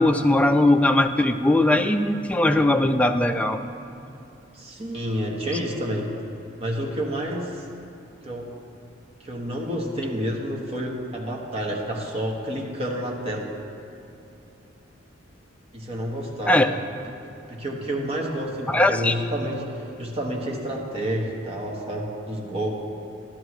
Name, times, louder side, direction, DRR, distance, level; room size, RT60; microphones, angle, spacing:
voice 1, 0.0-3.6 16.5-16.7 18.7-19.1, left 1 dB, 5° left, 6 dB, 0.3 m, -19 dB
voice 2, 4.5-6.2 6.6-7.6 8.2-8.5 9.2-13.5 15.7-16.8 17.5-22.8, equal, 30° right, -1 dB, 1.2 m, -29 dB
11.5 x 11.0 x 3.1 m, 3.0 s
head